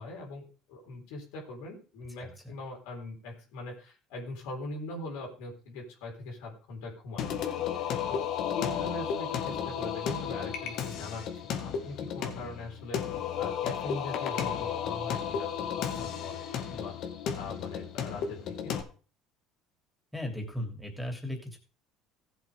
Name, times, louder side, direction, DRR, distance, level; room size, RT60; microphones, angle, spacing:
voice 1, 0.0-8.2 8.5-13.0 13.4-16.9 17.3-18.8, left 2 dB, 85° left, 0 dB, 4.0 m, -42 dB
voice 2, 2.2-2.5 20.1-21.6, left 1 dB, ahead, 3 dB, 3.1 m, -37 dB
Singing, 7.2-18.8, left 8 dB, 60° left, 1.9 m, -33 dB
15.5 x 7.7 x 3.7 m, 0.36 s
supercardioid pair, 110°, 0 cm